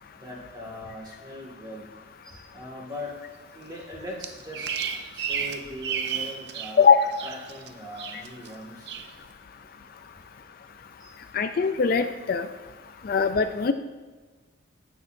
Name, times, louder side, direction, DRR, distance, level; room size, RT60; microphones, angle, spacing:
voice 1, 0.2-1.9 2.2-3.2 3.5-4.7 5.1-6.9 7.2-8.9 11.0-11.1, left 1 dB, 20° right, -4 dB, 1.9 m, -40 dB
Bird vocalization bird call bird song, 4.2-6.8 7.1-7.7 8.0-8.5 8.9-9.1, right 7 dB, 55° right, 0.5 m, -32 dB
voice 2, 11.3-12.5 13.0-13.7, left 6 dB, 45° left, 9 dB, 0.3 m, -21 dB
15.5 x 6.4 x 2.6 m, 1.3 s
head